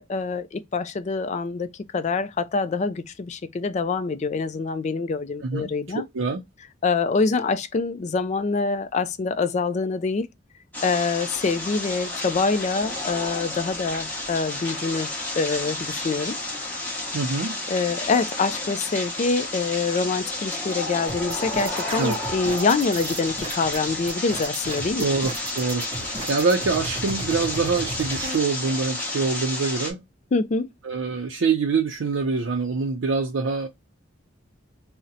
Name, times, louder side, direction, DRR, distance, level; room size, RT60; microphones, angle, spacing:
voice 1, 0.0-6.0 6.8-10.3 10.8-15.1 15.4-16.4 17.7-25.1 30.3-30.7, left 4 dB, 35° left, 0.3 m, -25 dB
voice 2, 5.9-6.4 17.1-17.5 22.0-22.2 25.0-30.0 30.8-33.7, right 4 dB, 90° right, 0.5 m, -25 dB
sound 1, 10.7-29.9, left 2 dB, 10° left, 0.9 m, -31 dB
sound 2, 21.1-28.4, right 3 dB, 30° right, 0.5 m, -35 dB
2.7 x 2.1 x 3.7 m
head